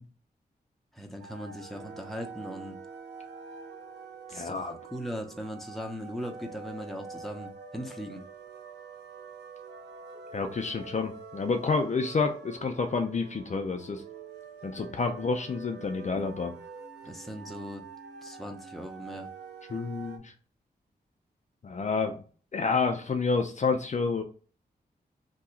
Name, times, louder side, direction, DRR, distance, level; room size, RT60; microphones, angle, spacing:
voice 1, 0.9-2.8 4.3-8.2 17.0-17.8 18.2-19.3, equal, ahead, 3 dB, 0.8 m, -39 dB
sound 1, 1.2-20.2, right 5 dB, 90° right, 0.5 m, -46 dB
voice 2, 4.3-4.8 10.3-14.0 14.6-16.5 19.7-20.3 21.6-22.2 22.5-24.2, left 4 dB, 45° left, 4 dB, 0.5 m, -29 dB
2.8 x 2.3 x 3.8 m, 0.40 s
cardioid pair, 50°, 17 cm